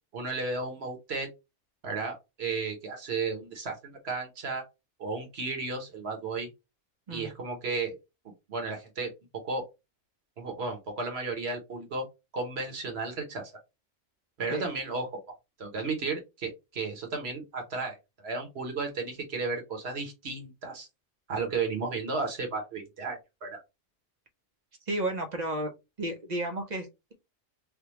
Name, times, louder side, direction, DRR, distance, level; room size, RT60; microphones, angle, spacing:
voice 1, 0.1-1.3 1.8-4.6 5.0-6.5 7.1-8.0 8.5-9.1 9.4-9.6 10.4-12.0 12.3-13.5 14.4-15.2 15.6-20.9 21.3-23.6, right 4 dB, 60° right, 4 dB, 1.2 m, -34 dB
voice 2, 24.9-25.7 26.0-27.1, right 1 dB, 45° right, 5 dB, 0.7 m, -32 dB
3.4 x 2.2 x 3.0 m, 0.24 s
omnidirectional pair, 1.3 m